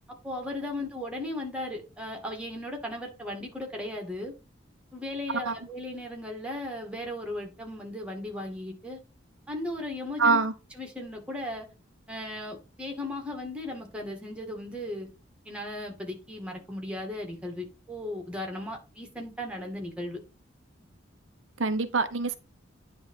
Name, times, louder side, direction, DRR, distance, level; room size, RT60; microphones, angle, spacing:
voice 1, 0.1-4.3 4.9-9.0 9.5-10.4 10.8-11.7 12.1-15.1 15.5-20.2, left 1 dB, 5° right, 2.1 m, -36 dB
voice 2, 10.2-10.5 21.6-22.4, right 4 dB, 80° right, 0.8 m, -24 dB
9.8 x 3.4 x 5.5 m
head